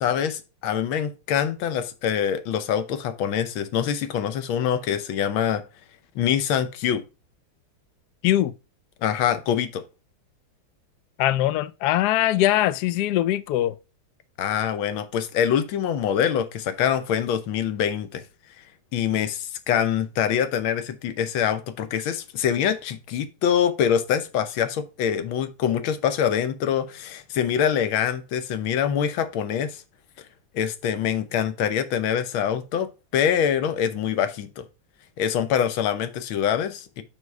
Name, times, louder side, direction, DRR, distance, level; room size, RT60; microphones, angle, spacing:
voice 1, 0.0-5.6 6.1-7.0 9.0-9.8 14.4-18.2 18.9-29.8 30.5-34.6 35.2-37.0, left 8 dB, 75° left, 1.6 m, -24 dB
voice 2, 11.2-13.7, left 13 dB, 90° left, 0.8 m, -21 dB
6.1 x 5.5 x 4.5 m
omnidirectional pair, 2.3 m